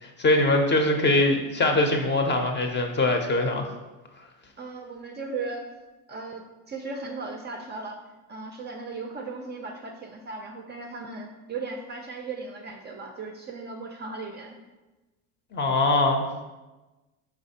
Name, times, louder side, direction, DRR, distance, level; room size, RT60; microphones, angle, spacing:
voice 1, 0.0-3.7 15.5-16.3, left 2 dB, 25° left, 4 dB, 0.5 m, -22 dB
voice 2, 4.6-5.7 6.1-6.4 6.7-8.0 8.3-14.6, right 3 dB, 25° right, 2 dB, 0.4 m, -36 dB
4.9 x 3.3 x 2.8 m, 1.1 s
supercardioid pair, 95°, 40 cm